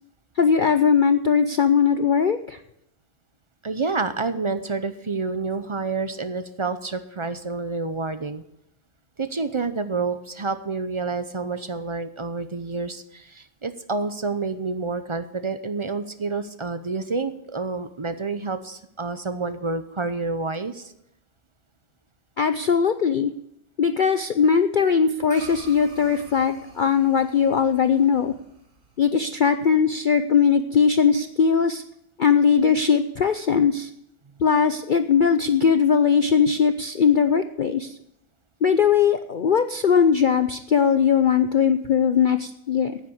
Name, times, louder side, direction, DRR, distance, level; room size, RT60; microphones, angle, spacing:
voice 1, 0.4-2.6 22.4-23.3 23.8-28.3 29.0-31.8 32.2-33.9 34.4-37.9 38.6-43.0, left 6 dB, 70° left, 9 dB, 0.4 m, -20 dB
voice 2, 3.6-8.4 9.2-20.9, right 4 dB, 35° right, 11 dB, 0.4 m, -28 dB
sound 1, 25.3-29.9, right 2 dB, 55° right, 3.1 m, -47 dB
9.6 x 9.2 x 8.4 m, 0.81 s
omnidirectional pair, 1.6 m